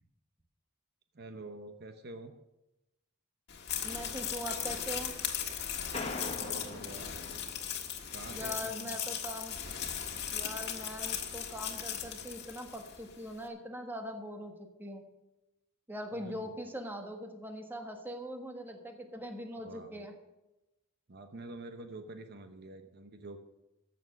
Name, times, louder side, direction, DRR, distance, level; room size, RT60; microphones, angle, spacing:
voice 1, 1.1-2.3 6.3-7.1 8.1-9.2 16.1-16.6 19.6-20.2 21.1-23.4, right 2 dB, 55° right, 7 dB, 0.9 m, -47 dB
sound 1, 3.5-13.0, left 8 dB, 55° left, 1.6 m, -38 dB
voice 2, 3.8-5.1 8.3-9.6 10.3-15.0 15.9-20.1, equal, 10° right, 4 dB, 1.4 m, -42 dB
sound 2, 5.9-8.3, left 3 dB, 30° left, 1.2 m, -42 dB
14.5 x 6.9 x 6.5 m, 0.97 s
head